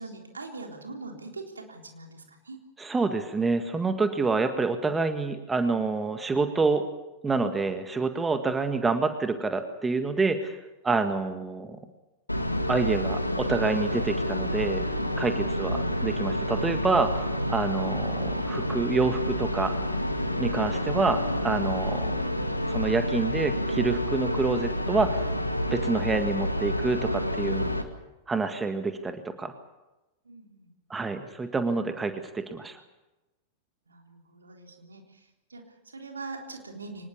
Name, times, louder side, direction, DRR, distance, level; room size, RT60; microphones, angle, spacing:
voice 1, 0.0-2.6 15.6-15.9 30.3-30.7 33.9-37.0, right 3 dB, 75° right, 2 dB, 3.7 m, -43 dB
voice 2, 2.8-6.9 7.2-10.6 10.8-11.8 12.7-14.8 15.2-19.7 20.4-22.2 22.7-25.3 25.7-27.7 28.3-29.5 30.9-32.8, right 3 dB, 15° right, 8 dB, 1.8 m, -27 dB
sound 1, 12.3-27.8, equal, 85° left, 1.9 m, -29 dB
24.5 x 20.0 x 7.1 m, 1.0 s
figure-of-eight pair, 90°, 0 cm